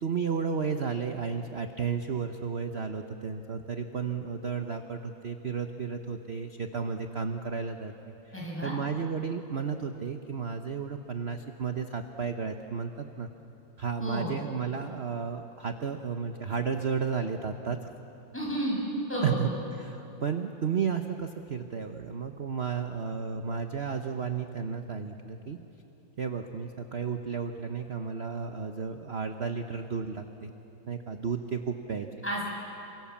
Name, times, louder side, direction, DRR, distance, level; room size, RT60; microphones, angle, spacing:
voice 1, 0.0-13.3 13.8-17.8 19.2-19.5 19.8-25.6 26.2-30.5 30.9-32.1, right 6 dB, 50° right, 6 dB, 0.7 m, -33 dB
voice 2, 8.3-8.7 14.0-14.4 18.3-18.8 19.1-19.5 32.2-32.4, equal, 5° left, -4 dB, 7.6 m, -31 dB
28.5 x 25.0 x 7.3 m, 3.0 s
omnidirectional pair, 2.3 m